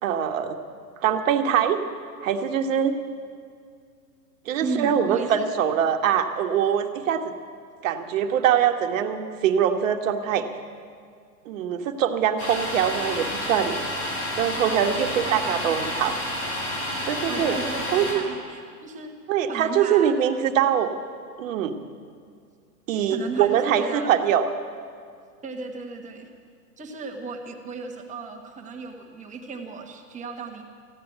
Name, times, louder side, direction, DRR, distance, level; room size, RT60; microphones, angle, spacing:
voice 1, 0.0-0.6 1.0-1.8 2.2-3.0 4.5-7.3 7.8-10.4 11.4-13.8 14.3-16.1 17.0-17.5 17.9-18.3 19.3-20.9 21.4-21.7 22.9-24.5, right 9 dB, 50° right, 6 dB, 1.4 m, -23 dB
voice 2, 4.6-5.5 15.0-16.1 17.3-19.1 19.5-20.1 23.1-24.1 25.4-26.3 26.8-30.6, right 4 dB, 15° right, 3 dB, 1.3 m, -35 dB
Domestic sounds home sounds, 12.4-18.1, left 1 dB, 50° left, 5.4 m, -30 dB
15.0 x 9.5 x 10.0 m, 2.2 s
hypercardioid pair, 135°, 49 cm